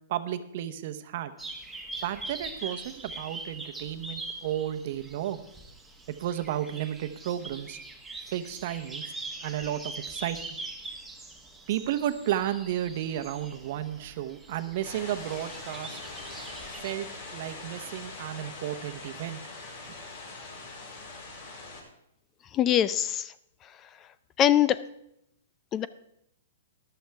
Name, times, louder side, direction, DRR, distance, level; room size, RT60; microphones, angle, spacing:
voice 1, 0.1-1.3 2.0-5.4 6.1-7.8 8.3-9.0 9.4-10.6 11.7-16.0 16.8-19.4, right 11 dB, 50° right, 10 dB, 0.9 m, -33 dB
sound 1, 1.4-16.9, right 2 dB, 5° right, 1.4 m, -42 dB
sound 2, 14.8-21.8, left 3 dB, 55° left, 4.4 m, -42 dB
voice 2, 22.5-23.3 24.4-24.8 25.7-25.9, left 10 dB, 25° left, 16 dB, 0.3 m, -23 dB
14.0 x 11.5 x 3.5 m, 0.78 s
hypercardioid pair, 150°, 0 cm